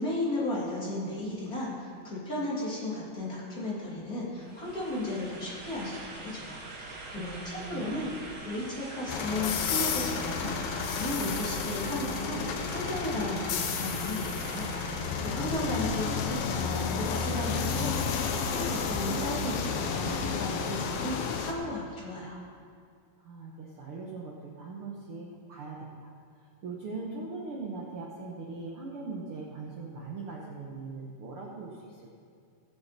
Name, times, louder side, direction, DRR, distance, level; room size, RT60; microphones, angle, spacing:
voice 1, 0.0-8.1 8.4-10.5 10.9-22.4, left 1 dB, 25° left, -6 dB, 2.6 m, -35 dB
sound 1, 4.4-15.2, right 2 dB, 50° right, 1.3 m, -44 dB
voice 2, 7.1-8.0 15.9-16.0 23.2-26.1 26.6-32.1, right 3 dB, 75° right, -3 dB, 1.2 m, -40 dB
sound 2, 9.1-21.5, left 6 dB, 85° left, 2.8 m, -31 dB
21.0 x 7.2 x 4.2 m, 2.2 s
omnidirectional pair, 4.2 m